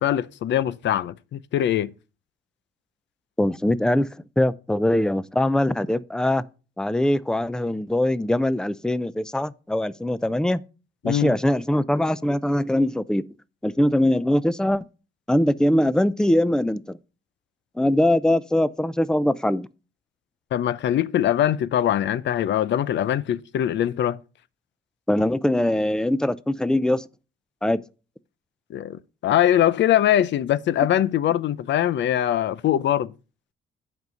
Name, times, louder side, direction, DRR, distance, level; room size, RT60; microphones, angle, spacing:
voice 1, 0.0-1.9 11.0-11.3 20.5-24.2 28.7-29.0 29.2-33.1, left 11 dB, 65° left, 0.6 m, -22 dB
voice 2, 3.4-4.1 4.4-6.4 6.8-10.6 11.0-13.2 13.6-14.8 15.3-17.0 17.8-19.7 25.1-27.1 27.6-27.8, left 1 dB, 5° left, 0.5 m, -22 dB
7.9 x 5.4 x 6.3 m
cardioid pair, 90°, 20 cm